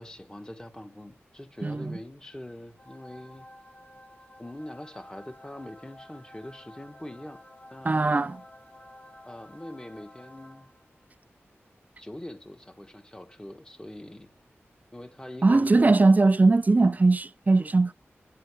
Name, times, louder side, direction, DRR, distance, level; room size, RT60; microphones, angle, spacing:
voice 1, 0.0-3.5 4.4-7.4 7.7-8.3 9.2-10.7 12.0-14.3 14.9-15.8, left 1 dB, 15° left, 1.7 m, -43 dB
voice 2, 1.6-2.0 7.8-8.4 15.4-17.9, right 3 dB, 35° right, 0.5 m, -20 dB
sound 1, 2.8-11.0, left 1 dB, 35° left, 3.1 m, -51 dB
10.0 x 7.7 x 4.8 m
wide cardioid pair, 60°, 5 cm